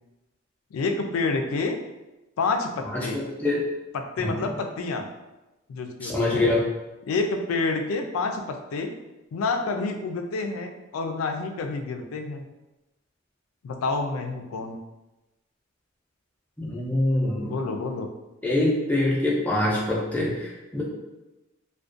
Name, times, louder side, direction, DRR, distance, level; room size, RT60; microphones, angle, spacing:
voice 1, 0.7-1.8 2.4-3.2 3.9-5.1 5.7-6.5 7.0-8.9 9.3-12.4 13.6-14.8 17.4-18.1, left 3 dB, 90° left, 5 dB, 0.3 m, -28 dB
voice 2, 3.1-3.6 4.2-4.3 6.0-6.6 16.6-17.5 18.4-20.8, left 2 dB, 5° left, -5 dB, 0.4 m, -24 dB
2.4 x 2.1 x 2.4 m, 1.0 s
head